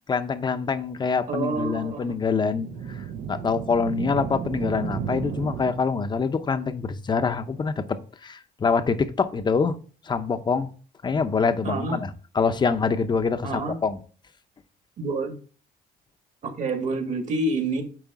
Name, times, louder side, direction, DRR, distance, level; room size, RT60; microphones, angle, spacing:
voice 1, 0.1-3.0 3.3-7.8 8.2-9.7 10.1-10.7 11.0-14.0, left 5 dB, 25° left, 10 dB, 0.8 m, -25 dB
voice 2, 1.3-2.1 11.6-12.0 13.4-13.8 15.0-15.4 16.4-17.8, right 3 dB, 45° right, 4 dB, 2.0 m, -27 dB
sound 1, 2.4-6.2, right 7 dB, 70° right, 0.9 m, -33 dB
9.0 x 3.3 x 6.0 m, 0.40 s
cardioid pair, 110°, 17 cm